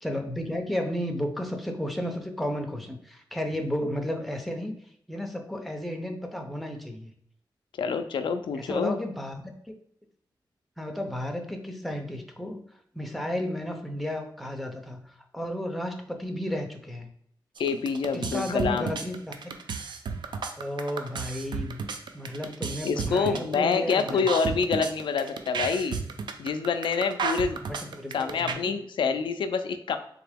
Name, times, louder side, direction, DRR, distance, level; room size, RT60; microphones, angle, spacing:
voice 1, 0.0-4.8 5.1-7.1 8.5-9.7 10.8-12.6 12.9-17.1 18.1-19.4 20.6-21.8 22.1-24.3 27.6-28.8, left 1 dB, ahead, 3 dB, 0.5 m, -33 dB
voice 2, 7.8-9.0 17.6-18.9 22.8-26.0 26.4-27.6 28.1-30.0, left 5 dB, 90° left, 8 dB, 0.4 m, -27 dB
sound 1, 17.6-28.5, right 5 dB, 70° right, 0.4 m, -32 dB
3.7 x 2.9 x 3.4 m, 0.68 s
wide cardioid pair, 140°, 8 cm